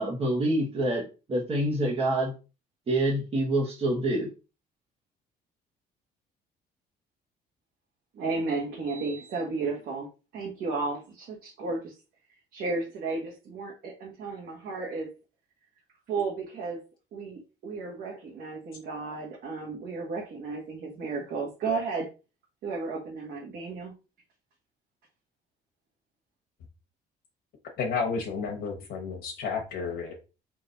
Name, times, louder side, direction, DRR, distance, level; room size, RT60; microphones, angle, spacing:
voice 1, 0.0-2.3 2.9-4.3, right 1 dB, 35° right, -3 dB, 1.2 m, -26 dB
voice 2, 8.1-11.9 12.5-15.1 16.1-16.8 17.1-22.1 22.6-23.9, right 3 dB, 70° right, -3 dB, 1.4 m, -33 dB
voice 3, 27.8-30.1, left 5 dB, 70° left, -1 dB, 1.0 m, -31 dB
3.9 x 2.8 x 3.9 m, 0.31 s
cardioid pair, 110°, 17 cm